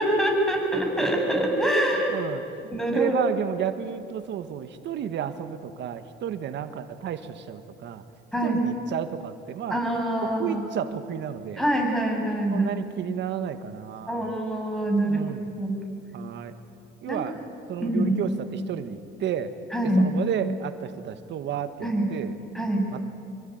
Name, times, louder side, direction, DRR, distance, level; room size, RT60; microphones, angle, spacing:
voice 1, 0.0-2.1 2.7-3.1 8.3-8.6 9.7-10.6 11.6-12.7 14.1-15.3 15.6-15.7 17.1-17.2 17.8-18.1 19.7-20.1 21.8-22.1 22.5-22.9, right 1 dB, ahead, 1 dB, 7.3 m, -24 dB
voice 2, 2.1-8.0 8.4-9.8 10.2-11.6 12.5-14.3 15.1-15.5 16.1-16.5 17.0-17.4 17.7-19.5 20.0-22.4 22.9-23.0, right 9 dB, 60° right, 9 dB, 1.8 m, -32 dB
26.0 x 24.0 x 9.5 m, 2.5 s
cardioid pair, 95°, 21 cm